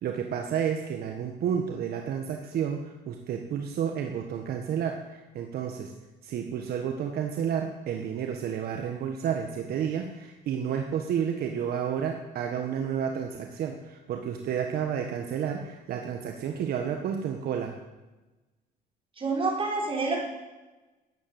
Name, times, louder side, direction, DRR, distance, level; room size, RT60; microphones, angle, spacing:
voice 1, 0.0-5.9 6.2-17.7, right 8 dB, 65° right, 4 dB, 1.6 m, -31 dB
voice 2, 19.2-20.3, right 3 dB, 30° right, -2 dB, 5.8 m, -28 dB
14.0 x 9.9 x 9.3 m, 1.1 s
cardioid pair, 110°, 17 cm